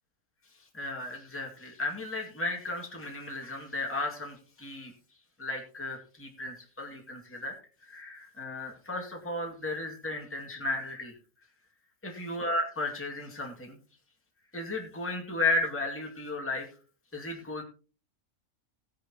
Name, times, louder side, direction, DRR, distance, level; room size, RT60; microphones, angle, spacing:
voice 1, 0.7-4.9 5.4-7.5 7.8-11.1 12.0-13.8 14.5-16.7 17.1-17.6, left 2 dB, 10° left, -1 dB, 2.2 m, -34 dB
17.0 x 10.0 x 2.9 m, 0.37 s
omnidirectional pair, 1.5 m